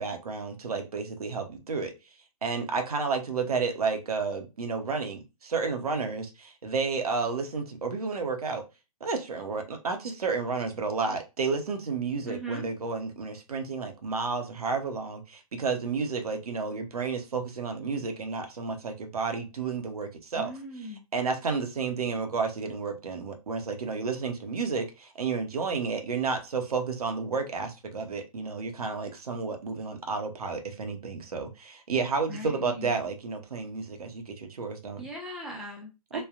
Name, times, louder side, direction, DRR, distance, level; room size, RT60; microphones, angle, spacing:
voice 1, 0.0-1.9 2.4-8.6 9.0-20.5 21.1-35.0, right 4 dB, 75° right, 5 dB, 0.8 m, -31 dB
voice 2, 12.3-12.6 20.3-21.0 32.3-32.9 35.0-36.2, right 1 dB, ahead, -1 dB, 0.6 m, -39 dB
3.2 x 2.2 x 2.4 m, 0.26 s
hypercardioid pair, 130°, 19 cm